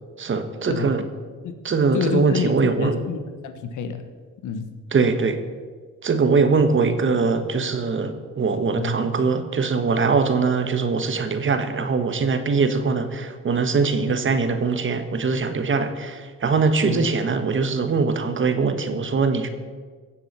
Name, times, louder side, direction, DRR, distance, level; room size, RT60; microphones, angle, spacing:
voice 1, 0.2-1.1 1.6-3.0 4.9-5.4 6.0-19.5, right 4 dB, 40° right, 9 dB, 1.5 m, -22 dB
voice 2, 1.9-4.0 4.4-4.7 8.8-9.0 13.9-14.2 16.8-17.1, left 6 dB, 80° left, 8 dB, 1.4 m, -28 dB
16.0 x 7.6 x 7.3 m, 1.5 s
cardioid pair, 90°, 30 cm